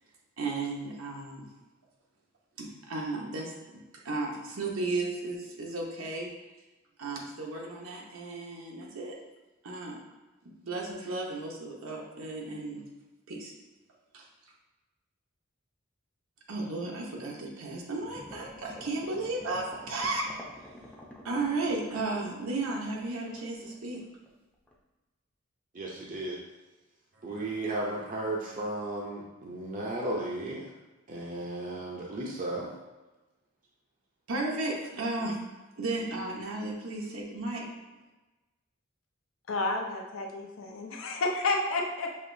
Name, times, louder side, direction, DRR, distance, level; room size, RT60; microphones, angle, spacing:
voice 1, 0.4-1.5 2.6-6.3 7.0-9.1 9.6-10.0 10.6-12.8 13.3-13.5 14.1-14.3 16.5-20.3 21.2-24.0 34.3-35.4 35.8-37.6, right 2 dB, 85° right, -1 dB, 0.8 m, -34 dB
sound 1, 18.0-24.3 24.7-24.8, left 1 dB, 5° left, 0.5 m, -50 dB
voice 2, 25.7-26.4 27.2-30.7 31.1-32.7, right 2 dB, 40° right, -3 dB, 0.5 m, -34 dB
voice 3, 39.5-42.1, left 2 dB, 75° left, 1 dB, 0.7 m, -30 dB
6.5 x 2.9 x 2.6 m, 1.1 s
head